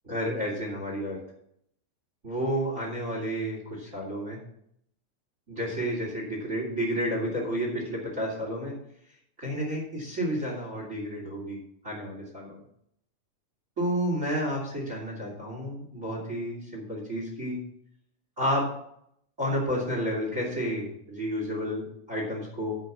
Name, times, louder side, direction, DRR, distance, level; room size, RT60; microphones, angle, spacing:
voice 1, 0.0-1.2 2.2-4.4 5.5-8.7 9.4-11.6 11.8-12.6 13.8-17.6 18.4-18.6 19.4-22.8, equal, 25° right, 0 dB, 3.1 m, -31 dB
10.5 x 5.6 x 6.2 m, 0.71 s
omnidirectional pair, 3.4 m